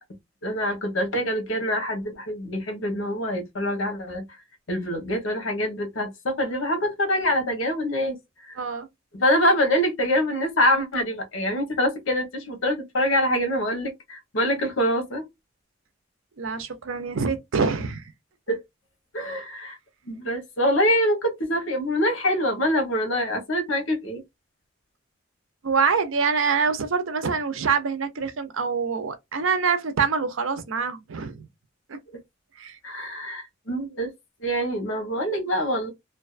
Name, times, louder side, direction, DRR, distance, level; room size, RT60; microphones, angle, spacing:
voice 1, 0.4-4.2 4.7-8.2 8.4-8.6 9.1-15.3 18.5-18.6 19.1-19.8 20.1-24.2 32.1-32.2 32.8-34.1 34.4-35.9, equal, 80° left, 1.0 m, -25 dB
voice 2, 8.6-8.9 16.4-18.0 25.6-31.5 31.9-32.0 32.6-32.8, right 5 dB, 85° right, 0.6 m, -25 dB
2.5 x 2.3 x 2.4 m
head